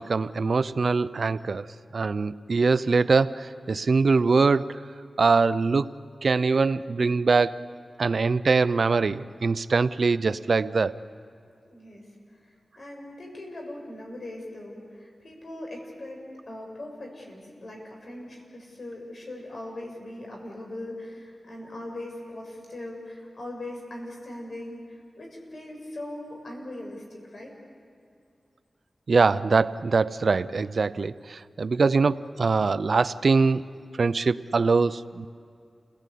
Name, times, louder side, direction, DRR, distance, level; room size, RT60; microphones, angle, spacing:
voice 1, 0.0-1.7 1.9-4.7 5.2-5.9 6.2-7.6 8.0-11.0 29.1-33.6 34.0-35.3, right 4 dB, 65° right, 15 dB, 0.5 m, -23 dB
voice 2, 11.6-12.1 12.4-27.5, left 1 dB, 60° left, 0 dB, 6.6 m, -40 dB
29.0 x 18.0 x 8.5 m, 2.4 s
wide cardioid pair, 70°, 0 cm